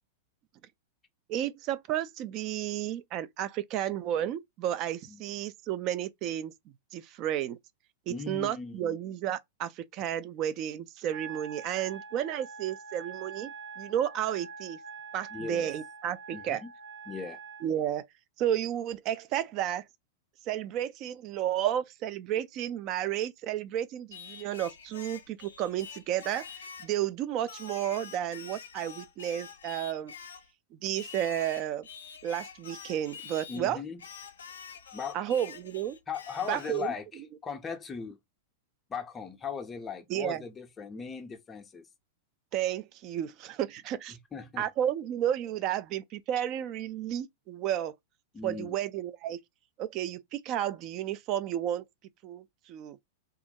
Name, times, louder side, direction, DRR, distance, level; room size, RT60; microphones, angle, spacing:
voice 1, 1.3-6.5 6.9-7.6 8.1-14.8 15.1-16.6 17.6-18.1 18.4-19.9 20.5-26.5 26.8-30.1 30.7-31.9 32.2-33.8 35.1-36.0 36.5-36.9 40.1-40.4 42.5-44.2 44.6-47.9 48.4-49.4 49.8-51.8 52.2-53.0, right 11 dB, 40° right, 0.3 m, -32 dB
voice 2, 8.1-9.0 15.3-15.7 16.3-16.7 17.1-17.4 33.5-34.0 34.9-35.2 36.1-38.2 38.9-41.9 44.1-44.7 48.3-48.8, left 6 dB, 20° left, 0.5 m, -38 dB
Wind instrument woodwind instrument, 11.1-17.7, right 6 dB, 70° right, 0.8 m, -45 dB
Singing, 24.1-27.0 27.5-30.5 30.9-33.6 34.0-36.9, left 7 dB, 75° left, 0.4 m, -46 dB
2.3 x 2.1 x 2.7 m
figure-of-eight pair, 100°, 0 cm